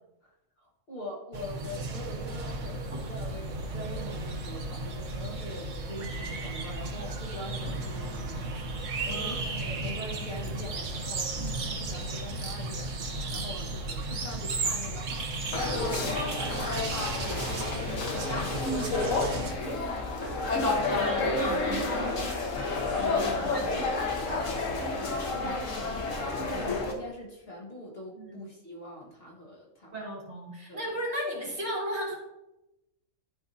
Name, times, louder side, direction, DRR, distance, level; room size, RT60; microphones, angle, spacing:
voice 1, 0.6-16.9 17.1-18.8 19.4-20.1 23.2-30.0 30.7-30.9, equal, 50° left, -2 dB, 1.7 m, -43 dB
sound 1, 1.3-19.5, right 2 dB, 70° right, 1.3 m, -34 dB
voice 2, 9.1-9.4 20.2-20.4 20.9-21.8 23.0-23.8 26.5-26.7 28.1-28.4 29.9-32.1, equal, 50° right, -5 dB, 2.9 m, -35 dB
sound 2, 15.5-26.9, left 3 dB, 75° left, 1.5 m, -30 dB
12.5 x 4.8 x 2.7 m, 0.91 s
omnidirectional pair, 1.4 m